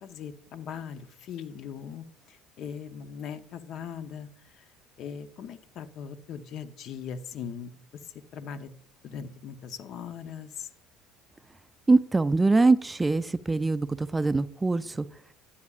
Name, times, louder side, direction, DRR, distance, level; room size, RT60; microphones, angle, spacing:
voice 1, 0.0-4.3 4.6-4.7 5.0-7.8 8.3-8.7 9.0-10.7, left 7 dB, 60° left, 11 dB, 0.7 m, -40 dB
voice 2, 11.9-15.1, right 3 dB, 15° right, 14 dB, 0.3 m, -23 dB
9.9 x 9.5 x 2.4 m, 0.64 s
supercardioid pair, 85°, 0 cm